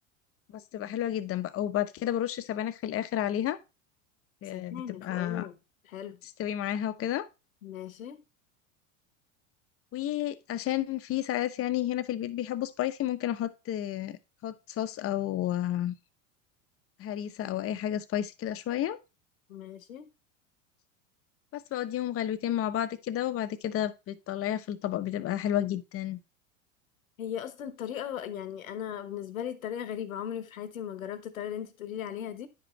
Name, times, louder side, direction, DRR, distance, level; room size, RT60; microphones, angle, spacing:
voice 1, 0.5-3.6 4.4-5.5 6.4-7.3 9.9-16.0 17.0-19.0 21.5-26.2, left 12 dB, 35° left, 0.8 m, -31 dB
voice 2, 4.4-5.6 5.8-6.2 7.6-8.2 19.5-20.1 27.2-32.5, left 9 dB, 85° left, 1.1 m, -37 dB
10.0 x 5.1 x 3.1 m
hypercardioid pair, 90°, 40 cm